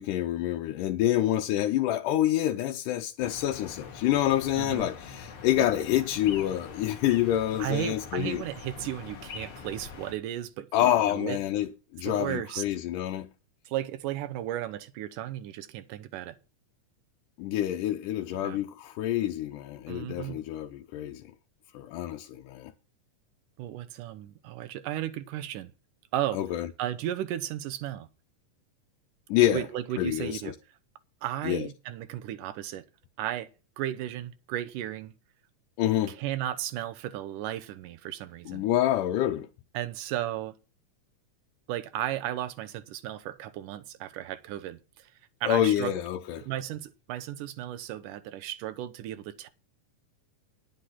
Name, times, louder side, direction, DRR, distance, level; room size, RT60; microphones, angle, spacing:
voice 1, 0.0-8.4 10.7-13.3 17.4-21.3 21.7-22.7 26.3-26.7 29.3-29.7 30.0-30.5 31.4-31.7 35.8-36.2 38.5-39.5 45.4-46.4, left 12 dB, 90° left, 2.3 m, -27 dB
sound 1, 3.2-10.1, left 6 dB, 50° left, 2.2 m, -44 dB
voice 2, 4.6-4.9 5.6-5.7 7.6-11.4 12.0-12.6 13.7-16.4 18.4-18.6 19.9-20.4 23.6-25.7 26.1-26.4 26.8-28.1 29.5-30.6 31.2-32.9 33.2-33.5 33.8-35.1 36.1-38.7 39.7-40.5 41.7-45.1 45.4-45.9 46.4-49.5, right 12 dB, 90° right, 2.4 m, -34 dB
10.5 x 8.1 x 5.8 m
omnidirectional pair, 3.6 m